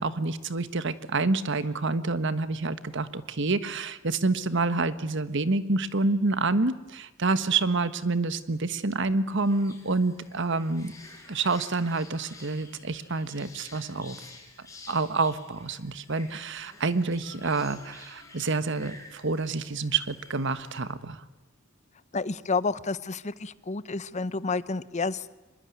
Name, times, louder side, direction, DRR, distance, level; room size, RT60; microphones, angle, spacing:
voice 1, 0.0-10.9 11.3-14.2 14.9-21.2, right 3 dB, 65° right, 13 dB, 1.4 m, -28 dB
sound 1, 9.4-20.8, left 3 dB, 15° left, 6.4 m, -51 dB
voice 2, 22.1-25.4, left 4 dB, 35° left, 17 dB, 0.8 m, -30 dB
24.5 x 21.5 x 9.4 m, 1.1 s
head